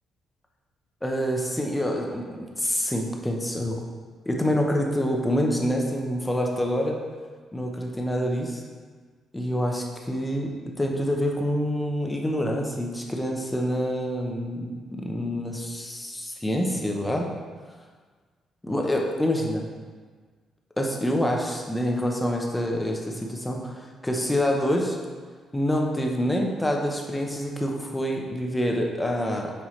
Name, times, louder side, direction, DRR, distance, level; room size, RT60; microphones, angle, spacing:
voice 1, 1.0-3.8 4.3-7.0 7.5-8.6 9.3-17.3 18.6-19.7 20.8-25.0 25.5-29.5, equal, 10° left, 0 dB, 0.9 m, -26 dB
7.2 x 4.7 x 3.2 m, 1.5 s
cardioid pair, 90°, 0 cm